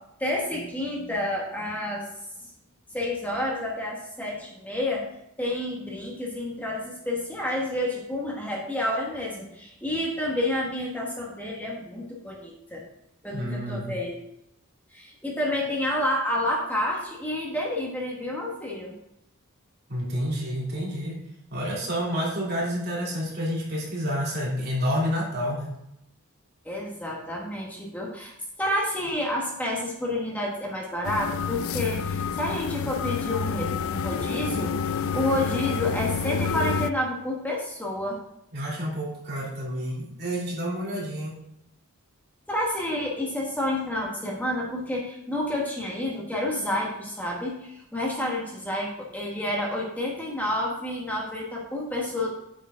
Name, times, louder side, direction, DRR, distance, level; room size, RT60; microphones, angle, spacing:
voice 1, 0.2-2.1 2.9-5.1 5.4-12.8 13.2-14.2 14.9-18.9 26.6-28.3 28.6-38.2 42.5-52.3, left 1 dB, 5° left, -3 dB, 1.4 m, -29 dB
voice 2, 13.3-13.9 19.9-21.2 21.5-25.7 38.5-41.3, equal, 45° right, -5 dB, 3.1 m, -29 dB
sound 1, 31.0-36.9, left 6 dB, 70° left, 0.4 m, -28 dB
8.6 x 6.9 x 3.8 m, 0.81 s
head